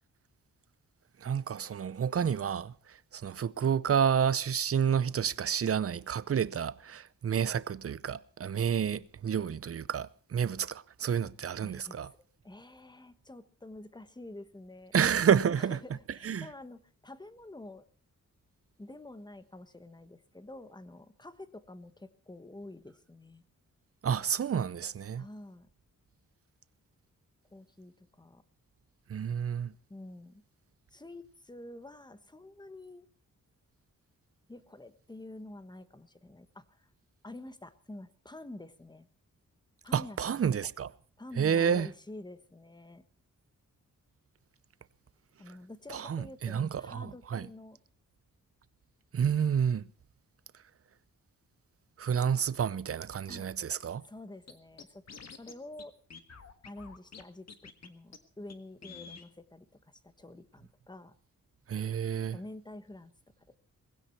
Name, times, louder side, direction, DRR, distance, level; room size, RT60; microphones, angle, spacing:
voice 1, 1.2-12.1 14.9-15.8 16.2-16.5 24.0-25.2 29.1-29.7 39.9-40.9 41.4-41.9 45.9-47.5 49.1-49.8 52.0-54.0 61.7-62.4, right 8 dB, 45° right, 0.7 m, -30 dB
voice 2, 11.6-12.0 12.4-15.2 15.6-17.9 18.8-23.4 25.2-25.7 27.5-28.4 29.9-30.4 30.9-33.0 34.5-36.9 37.2-39.1 39.8-40.4 41.2-43.0 45.4-47.8 53.3-53.5 54.0-55.0 55.3-55.9 56.6-61.1 62.3-63.1 63.4-63.6, left 2 dB, 15° left, 1.2 m, -48 dB
Scratching (performance technique), 54.5-54.6 54.8-55.5 55.8-55.9 56.1-57.2 57.5-57.9 58.1-58.2 58.5-58.6 58.8-59.3, left 5 dB, 55° left, 1.7 m, -48 dB
20.0 x 16.0 x 4.4 m
wide cardioid pair, 130°, 32 cm